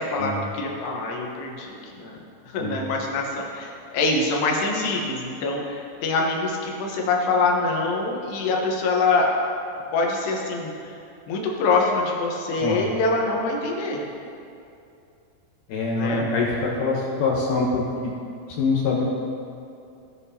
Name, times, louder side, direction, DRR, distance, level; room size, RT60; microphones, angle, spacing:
voice 1, 0.0-2.2 2.5-9.3 9.9-10.7 11.3-14.0 15.9-16.3, left 3 dB, 85° left, 0 dB, 3.3 m, -24 dB
voice 2, 15.7-17.8 18.6-19.1, left 3 dB, 70° left, -3 dB, 2.2 m, -24 dB
17.5 x 7.4 x 2.8 m, 2.5 s
omnidirectional pair, 4.7 m